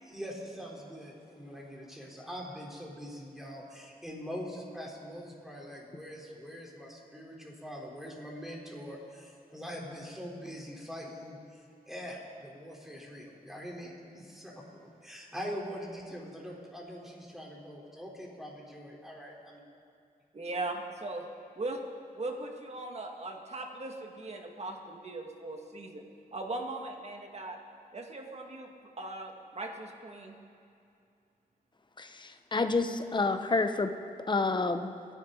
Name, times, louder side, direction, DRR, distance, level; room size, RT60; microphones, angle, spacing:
voice 1, 0.0-11.6 11.9-14.6 15.0-19.6, equal, ahead, -3 dB, 3.9 m, -43 dB
voice 2, 20.3-21.2 21.6-21.8 22.1-26.0 26.3-27.6 27.9-28.7 29.0-30.4, right 2 dB, 45° right, 2 dB, 2.1 m, -39 dB
voice 3, 32.0-33.9 34.3-34.9, left 3 dB, 30° left, 7 dB, 1.0 m, -29 dB
26.5 x 11.0 x 4.0 m, 2.5 s
cardioid pair, 80°, 15 cm